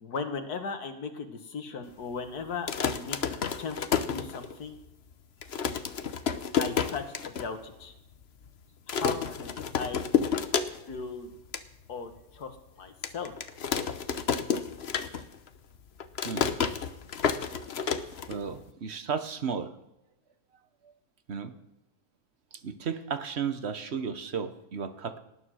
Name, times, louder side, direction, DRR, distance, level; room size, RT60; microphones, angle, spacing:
voice 1, 0.0-4.8 6.6-7.9 8.9-10.1 10.9-11.3 11.9-13.3, left 5 dB, 70° left, 6 dB, 2.0 m, -37 dB
sound 1, 2.5-4.8 5.1-5.2 5.4-7.5 7.8-7.9 8.1-8.5 8.9-11.0 11.3-11.7 12.2-12.3 13.0-15.5 15.7-18.7, left 7 dB, 50° left, 1.0 m, -30 dB
voice 2, 18.3-19.7 21.3-21.5 22.5-25.2, right 6 dB, 45° right, 10 dB, 1.1 m, -34 dB
18.5 x 9.8 x 6.4 m, 0.91 s
omnidirectional pair, 1.7 m